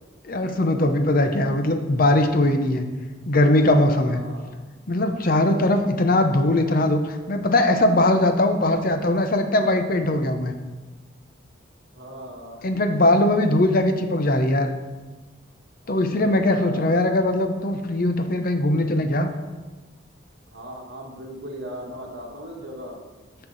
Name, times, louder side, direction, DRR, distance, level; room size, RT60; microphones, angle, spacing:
voice 1, 0.2-2.9 3.3-4.2 4.9-10.6 12.6-14.7 15.9-19.3, left 1 dB, 45° left, 7 dB, 0.7 m, -20 dB
voice 2, 1.0-1.3 4.1-4.6 5.4-5.8 11.9-12.6 12.9-13.0 15.8-17.0 20.5-23.0, equal, 65° right, 0 dB, 1.6 m, -39 dB
13.5 x 4.5 x 4.0 m, 1.2 s
head